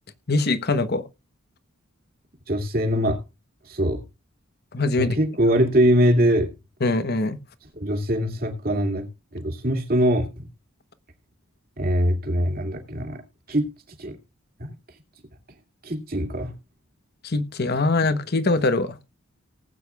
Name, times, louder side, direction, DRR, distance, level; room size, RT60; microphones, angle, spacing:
voice 1, 0.3-1.0 4.7-5.2 6.8-7.4 17.2-19.0, left 2 dB, 50° left, 1.0 m, -22 dB
voice 2, 2.5-3.2 3.6-4.0 5.0-6.5 7.8-10.5 11.8-13.2 13.5-13.7 14.0-14.2 14.6-14.7 15.8-16.5, equal, 45° right, 2.3 m, -22 dB
19.0 x 8.7 x 2.4 m
head